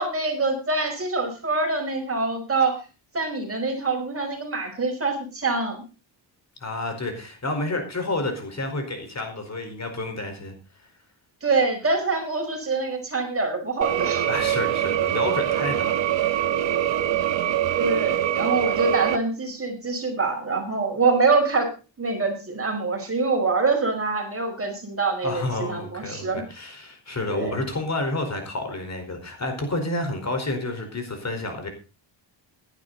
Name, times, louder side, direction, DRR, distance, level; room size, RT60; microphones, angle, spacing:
voice 1, 0.0-2.8 3.1-5.8 11.4-14.3 17.8-21.7 22.0-26.4 27.3-27.6, right 3 dB, 30° right, 4 dB, 5.2 m, -25 dB
voice 2, 6.6-10.5 14.3-16.4 25.2-31.7, left 2 dB, 35° left, 6 dB, 4.7 m, -30 dB
sound 1, 13.8-19.2, right 12 dB, 70° right, 1.4 m, -24 dB
17.5 x 11.5 x 4.1 m, 0.32 s
cardioid pair, 110°, 46 cm